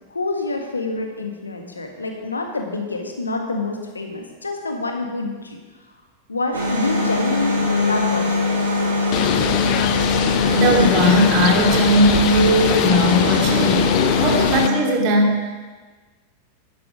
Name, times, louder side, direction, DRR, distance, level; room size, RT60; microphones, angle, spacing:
voice 1, 0.1-5.6 6.3-8.6 8.9-9.2, left 2 dB, 80° left, 3 dB, 1.6 m, -27 dB
sound 1, 6.5-14.7, left 2 dB, 70° right, 3.9 m, -21 dB
Bird, 9.1-14.7, left 14 dB, 40° left, 0.4 m, -22 dB
voice 2, 10.5-15.7, right 1 dB, 45° right, 1 dB, 2.5 m, -18 dB
12.0 x 9.4 x 5.1 m, 1.4 s
figure-of-eight pair, 90°, 0 cm